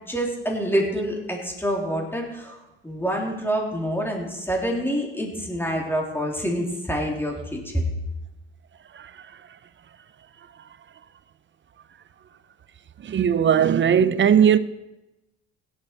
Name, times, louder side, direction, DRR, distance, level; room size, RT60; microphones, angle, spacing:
voice 1, 0.1-7.9, equal, 5° left, 3.3 m, -27 dB
voice 2, 13.0-14.6, right 8 dB, 40° right, 0.7 m, -18 dB
16.5 x 7.7 x 4.6 m
hypercardioid pair, 60°, 30 cm